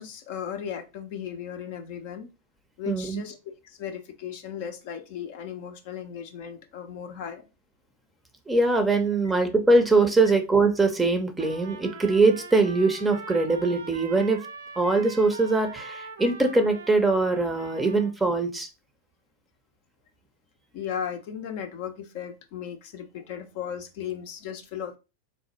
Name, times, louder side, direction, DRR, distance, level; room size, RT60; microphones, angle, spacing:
voice 1, 0.0-2.3 2.8-3.4 3.6-7.4 20.7-25.0, left 8 dB, 50° left, 6 dB, 0.5 m, -36 dB
voice 2, 2.9-3.2 8.5-14.4 14.8-18.7, right 3 dB, 10° right, 7 dB, 0.6 m, -22 dB
Trumpet, 11.4-18.1, right 5 dB, 65° right, 0.5 m, -43 dB
3.8 x 2.0 x 3.0 m, 0.28 s
figure-of-eight pair, 90°, 0 cm